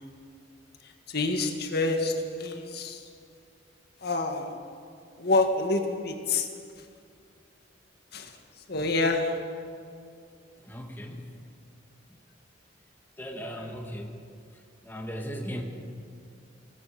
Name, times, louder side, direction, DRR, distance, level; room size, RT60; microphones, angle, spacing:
voice 1, 1.1-3.0 4.0-4.5 5.2-6.5 8.1-8.3 8.7-9.4, left 3 dB, 55° left, 4 dB, 2.0 m, -27 dB
voice 2, 10.6-11.2 13.2-14.1 14.8-15.6, equal, 10° left, 1 dB, 2.1 m, -37 dB
27.5 x 19.0 x 7.2 m, 2.3 s
head